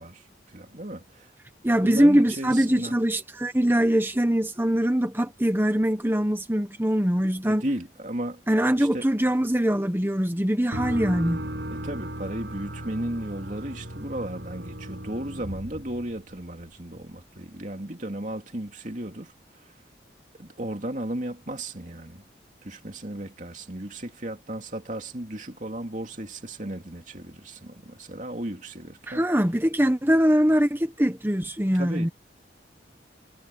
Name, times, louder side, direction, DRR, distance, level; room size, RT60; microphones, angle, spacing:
voice 1, 0.0-1.3 1.7-3.0 7.4-8.4 8.8-9.1 11.7-19.7 20.4-22.2 22.6-29.2 31.7-32.1, right 1 dB, 45° right, 2.9 m, -35 dB
voice 2, 1.6-7.6 8.5-11.4 29.1-32.1, equal, 10° right, 1.2 m, -22 dB
sound 1, 10.7-16.6, right 1 dB, 70° right, 8.0 m, -36 dB
head